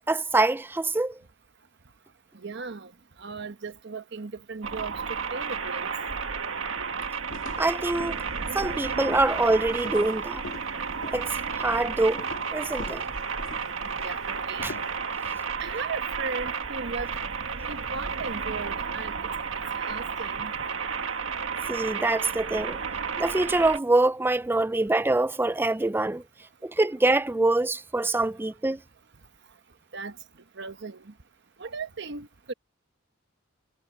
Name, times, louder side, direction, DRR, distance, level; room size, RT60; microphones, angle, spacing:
voice 1, 0.1-1.2 7.6-8.2 8.5-10.4 11.1-11.3 11.6-12.3 12.5-13.0 14.6-14.7 21.7-22.8 23.2-26.2 26.6-28.8, right 2 dB, 10° right, 0.4 m, -24 dB
voice 2, 2.3-2.9 3.2-5.9 13.9-14.8 15.6-17.1 17.7-19.1 19.5-20.5 29.9-30.1 30.6-31.0 31.6-32.5, right 4 dB, 60° right, 1.1 m, -37 dB
sound 1, 4.6-23.8, right 5 dB, 75° right, 1.6 m, -32 dB
sound 2, 7.3-15.3, left 2 dB, 75° left, 1.9 m, -44 dB
head